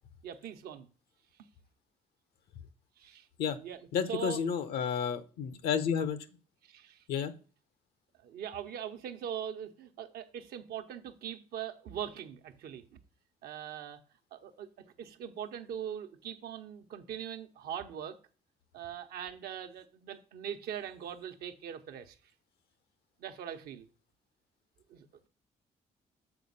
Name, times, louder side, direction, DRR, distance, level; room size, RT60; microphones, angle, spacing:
voice 1, 0.2-0.9 3.0-3.3 3.6-3.8 4.1-4.4 6.7-7.0 8.2-12.8 13.4-14.0 14.3-14.7 15.0-18.2 18.7-22.1 23.2-23.9 24.9-25.0, right 9 dB, 75° right, 7 dB, 0.9 m, -41 dB
voice 2, 3.9-6.2 7.1-7.3, left 7 dB, 80° left, 12 dB, 0.8 m, -31 dB
7.0 x 4.2 x 5.4 m, 0.37 s
supercardioid pair, 75°, 16 cm